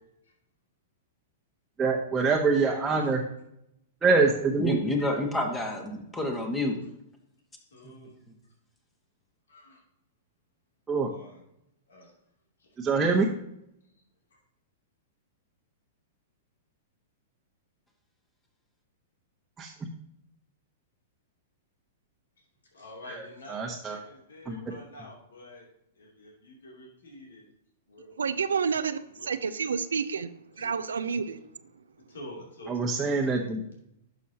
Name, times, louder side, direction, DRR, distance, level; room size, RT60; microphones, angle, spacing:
voice 1, 1.8-3.2 4.0-4.7 10.9-11.1 12.8-13.3 19.6-19.7 23.1-24.0 24.4-24.6 32.7-33.6, right 4 dB, 15° right, -2 dB, 1.1 m, -25 dB
voice 2, 2.6-3.1 7.7-8.2 9.5-9.8 11.1-11.4 11.9-12.1 22.7-25.6 25.9-27.5 27.9-28.2 29.2-29.3 30.5-30.7 32.1-33.2, left 1 dB, 80° left, -2 dB, 2.9 m, -47 dB
voice 3, 4.5-6.8 7.8-7.9, left 1 dB, 15° left, 2 dB, 1.7 m, -29 dB
voice 4, 28.2-31.4, right 6 dB, 85° right, 12 dB, 0.5 m, -29 dB
11.0 x 6.3 x 2.9 m, 0.80 s
hypercardioid pair, 115°, 0 cm